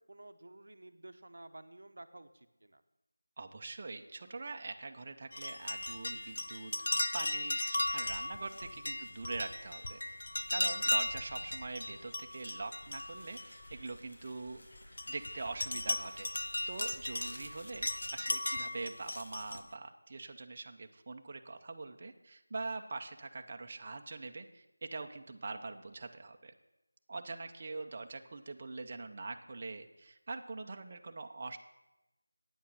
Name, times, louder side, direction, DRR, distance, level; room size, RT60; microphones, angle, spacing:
voice 1, 0.0-2.8 8.9-9.1 10.7-10.8 17.4-17.5, right 2 dB, 60° right, 10 dB, 0.7 m, -53 dB
voice 2, 3.4-6.7 7.1-10.0 10.5-14.6 15.1-16.3 16.7-26.5 27.1-31.6, right 3 dB, 25° right, 5 dB, 0.6 m, -43 dB
sound 1, 5.3-14.1 14.6-19.6, left 1 dB, 55° left, 0.6 m, -37 dB
Car, 10.0-18.1, equal, 30° left, 4.9 m, -56 dB
9.1 x 8.4 x 6.4 m, 0.97 s
figure-of-eight pair, 175°, 0 cm